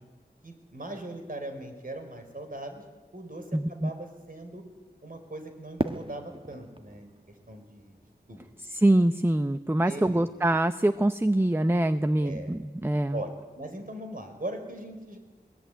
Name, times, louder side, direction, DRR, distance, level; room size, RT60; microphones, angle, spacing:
voice 1, 0.4-2.8 3.1-3.4 3.7-4.6 5.0-7.2 7.5-8.0 8.3-8.4 9.9-10.3 12.2-12.5 13.1-13.3 13.5-15.2, right 1 dB, 55° right, 5 dB, 4.4 m, -39 dB
voice 2, 3.5-3.9 8.6-13.2, right 1 dB, 15° right, 10 dB, 0.8 m, -24 dB
Fireworks, 5.8-8.8, right 2 dB, 30° right, 1.5 m, -37 dB
21.5 x 20.0 x 9.3 m, 1.3 s
wide cardioid pair, 55°, 18 cm